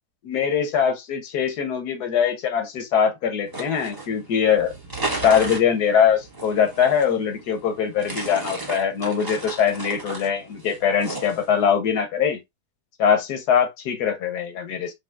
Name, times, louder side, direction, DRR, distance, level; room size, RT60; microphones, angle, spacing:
voice 1, 0.2-4.7 5.2-12.4 13.0-14.9, left 7 dB, 85° left, 1.4 m, -22 dB
sound 1, 3.5-11.6, right 2 dB, 15° right, 1.0 m, -35 dB
5.3 x 2.4 x 2.4 m
omnidirectional pair, 1.7 m